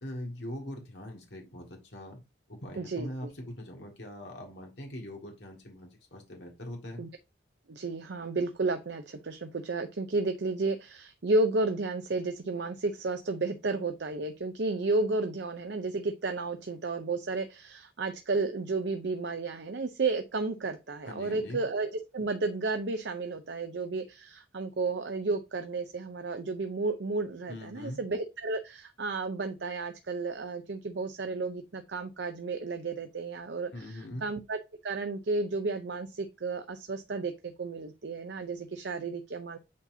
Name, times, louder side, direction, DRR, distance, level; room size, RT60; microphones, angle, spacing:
voice 1, 0.0-2.2 2.5-7.0 21.1-21.6 27.5-28.0 33.7-34.2, left 1 dB, 65° left, 1 dB, 2.0 m, -42 dB
voice 2, 2.8-3.3 7.0-7.1 7.7-39.6, right 3 dB, 70° right, 8 dB, 0.6 m, -32 dB
8.4 x 4.1 x 2.7 m, 0.24 s
head